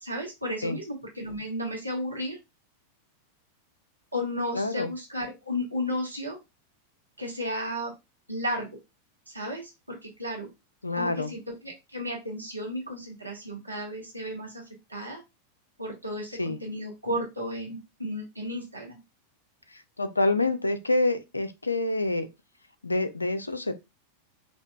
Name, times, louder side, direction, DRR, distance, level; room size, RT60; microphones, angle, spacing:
voice 1, 0.0-2.4 4.1-6.4 7.2-7.9 8.3-8.7 9.3-10.5 11.0-15.2 15.8-19.0, left 1 dB, 85° right, 1.0 m, -33 dB
voice 2, 4.5-4.9 10.8-11.3 16.4-16.6 19.7-22.3 22.8-23.7, left 2 dB, 80° left, 0.5 m, -27 dB
4.5 x 2.8 x 2.3 m
figure-of-eight pair, 90°, 0 cm